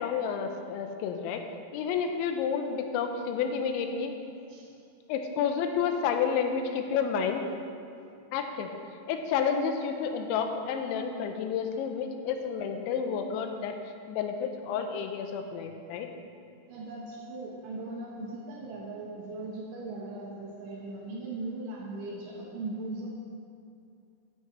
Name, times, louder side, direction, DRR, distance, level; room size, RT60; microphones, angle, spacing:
voice 1, 0.0-1.4 1.7-4.1 5.1-7.5 8.3-8.7 9.1-13.8 14.1-16.1, left 6 dB, 85° left, 5 dB, 3.0 m, -30 dB
voice 2, 16.7-23.2, right 2 dB, 90° right, -3 dB, 1.9 m, -39 dB
12.5 x 10.0 x 3.1 m, 2.5 s
omnidirectional pair, 5.4 m